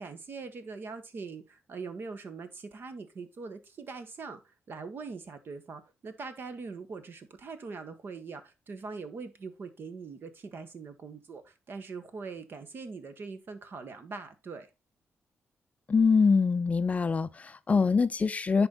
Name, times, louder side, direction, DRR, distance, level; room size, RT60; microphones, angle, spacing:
voice 1, 0.0-14.7, right 4 dB, 50° right, 1.3 m, -42 dB
voice 2, 15.9-18.7, left 5 dB, 30° left, 0.4 m, -24 dB
10.5 x 4.5 x 4.0 m
cardioid pair, 110°, 5 cm